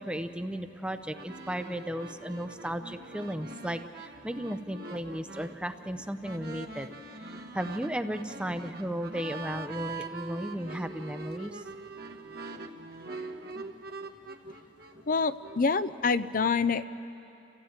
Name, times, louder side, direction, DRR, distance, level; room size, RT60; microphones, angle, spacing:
voice 1, 0.0-6.9 7.2-11.6, equal, 5° right, 9 dB, 0.6 m, -35 dB
sound 1, 1.1-15.6, right 3 dB, 55° right, 1.3 m, -43 dB
voice 2, 15.1-16.8, left 4 dB, 50° left, 14 dB, 0.5 m, -26 dB
29.0 x 15.5 x 8.9 m, 2.9 s
head